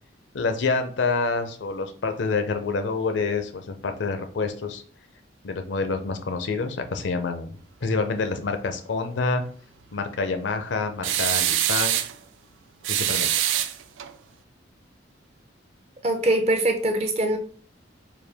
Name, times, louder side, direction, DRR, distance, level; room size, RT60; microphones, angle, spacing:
voice 1, 0.3-4.8 5.4-7.5 7.8-9.4 9.9-12.0 12.9-13.3, left 4 dB, 70° left, 7 dB, 0.5 m, -27 dB
sound 1, 11.0-12.1 12.8-14.1, right 11 dB, 85° right, 0.4 m, -24 dB
voice 2, 16.0-17.4, right 1 dB, 35° right, 5 dB, 0.6 m, -22 dB
4.6 x 2.2 x 3.4 m, 0.44 s
head